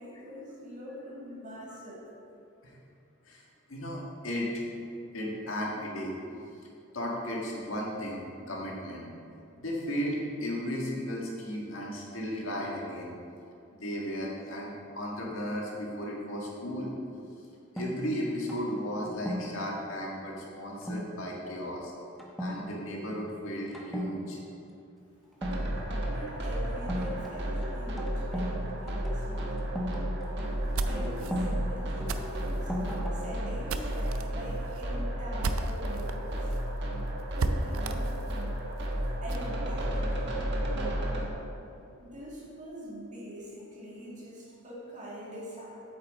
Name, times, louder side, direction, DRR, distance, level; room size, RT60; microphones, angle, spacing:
voice 1, 0.0-2.1 26.0-29.7 30.6-32.8 33.1-36.5 37.3-38.2 39.2-41.3 42.0-45.8, equal, 40° right, -5 dB, 2.1 m, -44 dB
voice 2, 3.7-4.7 5.1-6.1 6.9-8.2 8.5-9.1 9.6-13.1 13.8-16.9 17.7-21.9 22.4-24.4, equal, 70° left, -3 dB, 1.7 m, -35 dB
sound 1, 17.8-19.6 20.8-21.1 21.5-21.7 22.2-22.6 22.9-23.3 23.7-24.1 25.3-26.1 26.9-28.6 28.9-31.5 32.0-33.5, equal, ahead, 0.9 m, -37 dB
sound 2, 25.4-41.3, equal, 60° right, 1.3 m, -33 dB
sound 3, 30.5-36.1 36.5-36.6 36.9-37.0 37.4-39.5, right 3 dB, 85° right, 0.5 m, -36 dB
8.4 x 7.2 x 4.1 m, 2.6 s
head